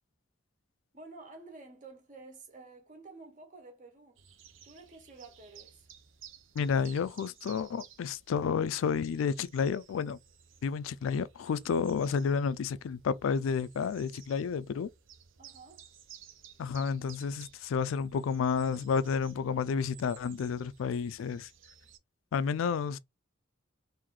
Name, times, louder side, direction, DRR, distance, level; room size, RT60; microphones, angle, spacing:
voice 1, 0.9-4.2 4.6-5.9 15.4-15.9, right 3 dB, 40° right, 1.1 m, -51 dB
sound 1, 4.2-22.0, right 9 dB, 70° right, 0.7 m, -56 dB
voice 2, 6.6-10.2 10.6-14.9 16.6-21.5 22.3-23.0, left 6 dB, 80° left, 0.3 m, -31 dB
3.1 x 2.6 x 3.7 m
head